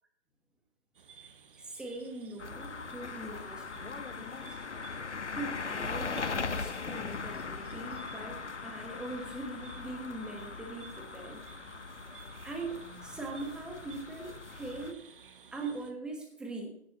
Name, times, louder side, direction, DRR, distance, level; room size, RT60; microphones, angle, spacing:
sound 1, 0.9-15.9, right 6 dB, 50° right, 1.3 m, -55 dB
voice 1, 1.6-4.6 5.3-11.4 12.4-15.0 15.5-16.8, right 2 dB, ahead, 1 dB, 1.3 m, -41 dB
sound 2, 2.4-14.9, left 5 dB, 80° left, 1.2 m, -40 dB
15.5 x 10.5 x 3.0 m, 0.72 s
figure-of-eight pair, 150°, 35 cm